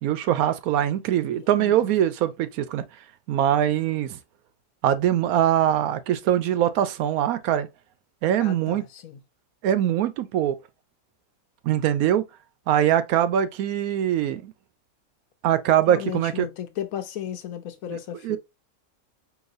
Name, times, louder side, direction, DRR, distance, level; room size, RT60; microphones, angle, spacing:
voice 1, 0.0-2.8 3.3-4.2 4.8-7.7 8.2-8.8 9.6-10.6 11.6-12.2 12.7-14.5 15.4-16.5 17.9-18.0 18.2-18.4, right 11 dB, 80° right, 1.1 m, -22 dB
voice 2, 1.3-1.9 8.4-9.2 15.9-18.4, left 10 dB, 75° left, 1.1 m, -35 dB
4.8 x 3.0 x 2.5 m
omnidirectional pair, 1.5 m